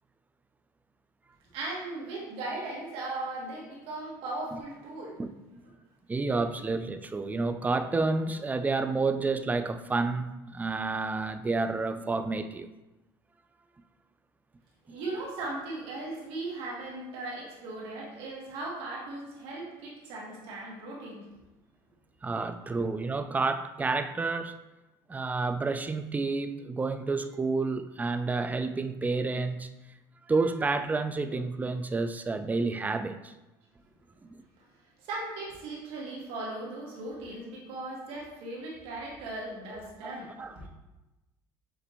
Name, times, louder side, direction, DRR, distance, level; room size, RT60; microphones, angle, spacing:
voice 1, 1.5-5.2 14.9-21.3 22.6-22.8 35.0-40.7, right 2 dB, 70° right, -4 dB, 1.6 m, -38 dB
voice 2, 6.1-12.7 22.2-24.5 25.1-29.7 30.3-33.3 34.2-34.4 39.7-40.7, right 3 dB, 15° right, 10 dB, 0.3 m, -30 dB
6.9 x 2.6 x 3.0 m, 1.0 s
supercardioid pair, 90°, 10 cm